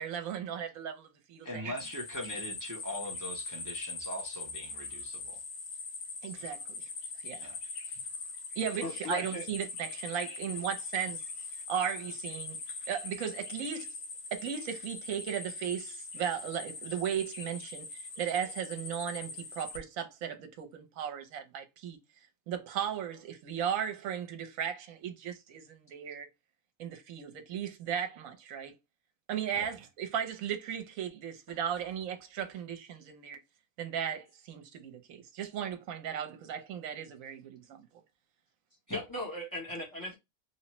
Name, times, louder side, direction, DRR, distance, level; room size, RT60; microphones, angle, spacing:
voice 1, 0.0-1.7 6.2-6.6 7.2-7.5 8.6-11.2 11.7-12.6 12.9-13.9 14.3-17.9 18.2-22.0 22.5-26.3 26.8-28.7 29.3-33.4 33.8-37.9, right 8 dB, 75° right, 1.1 m, -36 dB
voice 2, 1.4-5.4 7.4-7.6 29.6-29.7 31.5-31.6 38.9-39.0, left 1 dB, 30° right, 0.3 m, -41 dB
sound 1, 1.8-19.8, left 3 dB, 90° left, 1.3 m, -42 dB
voice 3, 8.8-9.5 38.9-40.1, left 1 dB, 20° left, 0.8 m, -37 dB
3.0 x 2.1 x 2.8 m
omnidirectional pair, 1.5 m